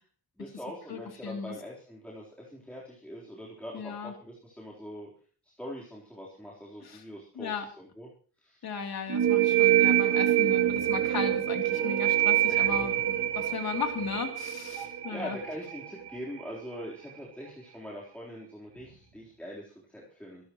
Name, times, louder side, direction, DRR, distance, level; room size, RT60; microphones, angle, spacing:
voice 1, 0.4-5.1 5.4-7.5 8.0-8.1 8.4-8.6 12.5-12.8 14.7-20.5, equal, 5° left, -6 dB, 4.0 m, -43 dB
voice 2, 0.9-1.5 3.7-4.1 6.8-7.0 7.3-7.7 8.6-15.4, left 6 dB, 65° left, 3 dB, 3.3 m, -36 dB
sound 1, 9.1-16.5, right 12 dB, 75° right, 2.2 m, -26 dB
25.5 x 13.0 x 3.1 m, 0.42 s
wide cardioid pair, 145°, 40 cm